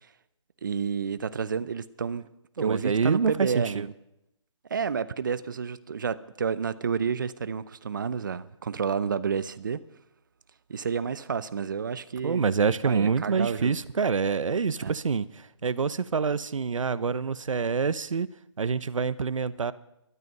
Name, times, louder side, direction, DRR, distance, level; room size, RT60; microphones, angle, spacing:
voice 1, 0.6-2.3 2.6-3.9 4.7-9.8 10.7-12.4 12.8-13.7 14.8-14.9, right 6 dB, 40° right, 0.7 m, -30 dB
voice 2, 2.6-3.9 12.2-18.3 18.6-19.7, right 5 dB, 85° right, 0.9 m, -26 dB
17.0 x 12.5 x 5.4 m
hypercardioid pair, 170°, 16 cm